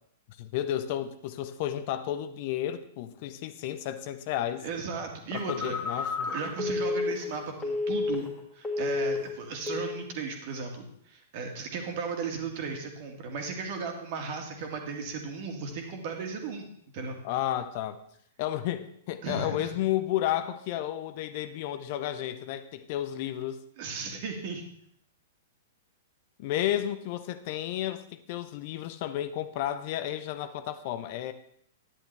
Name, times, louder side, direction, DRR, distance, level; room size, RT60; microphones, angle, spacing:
voice 1, 0.4-4.7 5.3-6.3 17.2-18.0 18.4-23.6 26.4-31.3, left 12 dB, 45° left, 11 dB, 0.6 m, -32 dB
voice 2, 4.6-16.7 16.9-17.2 19.2-19.7 23.8-24.6, right 4 dB, 45° right, 3 dB, 2.0 m, -36 dB
Telephone, 5.3-8.4 8.6-9.3 9.7-10.0, left 3 dB, 10° left, 2.3 m, -31 dB
11.0 x 10.5 x 3.3 m, 0.70 s
figure-of-eight pair, 105°, 0 cm